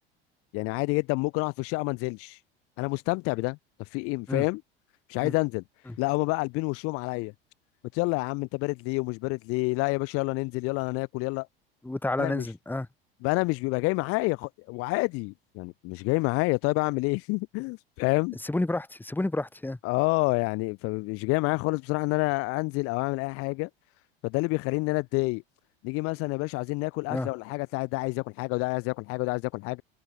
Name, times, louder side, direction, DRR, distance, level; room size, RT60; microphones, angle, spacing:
voice 1, 0.5-2.4 2.8-4.6 5.1-5.6 6.0-7.3 7.9-11.5 12.2-12.5 13.2-18.4 19.8-23.7 24.2-25.4 25.8-29.8, left 26 dB, 50° left, 0.7 m, -28 dB
voice 2, 11.8-12.9 18.4-19.8 27.1-27.3, left 2 dB, 5° left, 1.7 m, -30 dB
hypercardioid pair, 75°, 30 cm